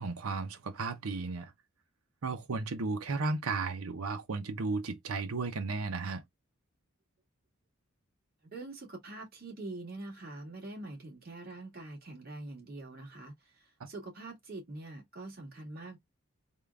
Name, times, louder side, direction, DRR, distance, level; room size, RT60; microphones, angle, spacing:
voice 1, 0.0-1.5 2.2-6.2, right 3 dB, 90° right, 0.7 m, -34 dB
voice 2, 8.5-16.0, right 2 dB, 45° right, 1.9 m, -44 dB
3.7 x 2.3 x 3.4 m
head